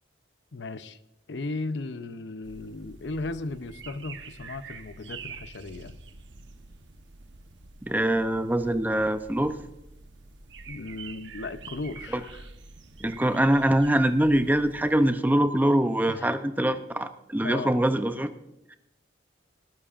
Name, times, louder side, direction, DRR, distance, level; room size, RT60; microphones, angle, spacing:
voice 1, 0.5-1.0 1.3-6.0 10.7-12.5 13.1-13.2 16.1-16.4 17.4-17.8, left 3 dB, 75° left, 12 dB, 0.7 m, -36 dB
sound 1, 2.4-15.1, right 4 dB, 85° right, 1.0 m, -46 dB
voice 2, 7.8-9.6 13.0-18.3, right 1 dB, 10° right, 9 dB, 0.6 m, -23 dB
19.5 x 12.5 x 2.5 m, 0.87 s
head